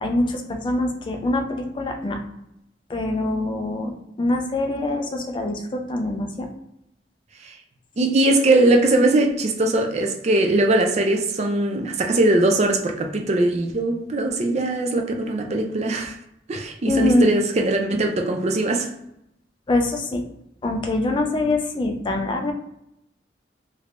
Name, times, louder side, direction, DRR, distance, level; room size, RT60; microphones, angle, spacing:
voice 1, 0.0-2.2 2.9-3.9 4.2-6.5 16.9-17.4 19.7-20.2 20.6-22.5, left 2 dB, 30° left, 0.4 m, -24 dB
voice 2, 8.0-16.1 16.5-18.9, right 2 dB, 40° right, 0.4 m, -20 dB
3.3 x 3.2 x 2.5 m
head